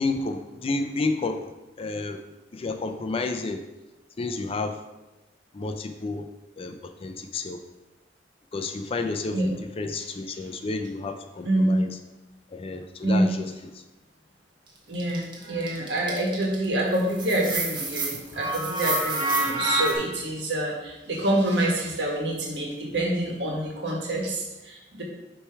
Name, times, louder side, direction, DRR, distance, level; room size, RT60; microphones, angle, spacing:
voice 1, 0.0-2.2 2.5-3.6 4.2-4.8 5.5-6.3 6.6-7.7 8.5-12.0 12.5-13.8 18.3-18.4, left 3 dB, 30° left, 7 dB, 0.4 m, -31 dB
voice 2, 11.4-11.9 13.0-13.3 14.9-25.0, right 1 dB, 65° right, -2 dB, 1.5 m, -26 dB
sound 1, 15.0-16.6 16.9-19.9, right 2 dB, 25° right, 1.0 m, -28 dB
6.6 x 3.2 x 4.5 m, 1.0 s
head